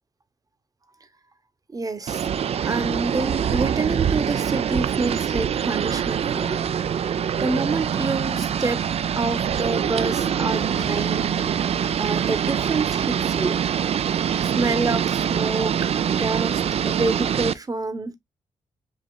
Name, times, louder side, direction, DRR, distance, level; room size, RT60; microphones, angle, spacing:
voice 1, 1.7-2.3 2.6-6.7 7.4-8.8 9.2-11.4 12.0-13.6 14.4-18.2, right 3 dB, 30° right, 0.9 m, -27 dB
sound 1, 2.1-17.5, right 8 dB, 55° right, 0.4 m, -24 dB
sound 2, 6.8-14.1, left 8 dB, 75° left, 0.7 m, -45 dB
7.2 x 2.8 x 2.2 m
cardioid pair, 70°, 13 cm